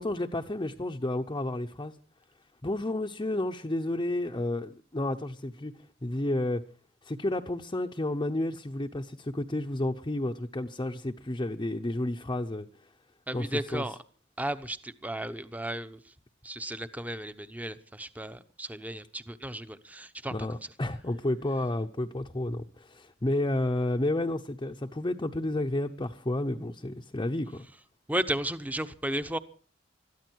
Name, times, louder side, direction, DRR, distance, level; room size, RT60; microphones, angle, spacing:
voice 1, 0.0-1.9 2.6-5.7 6.0-6.6 7.0-12.7 13.3-13.8 20.3-27.7, left 1 dB, 25° left, 0.8 m, -31 dB
voice 2, 13.3-14.0 14.4-16.0 16.4-20.5 28.1-29.4, right 1 dB, 10° right, 0.9 m, -34 dB
21.5 x 14.0 x 4.6 m
head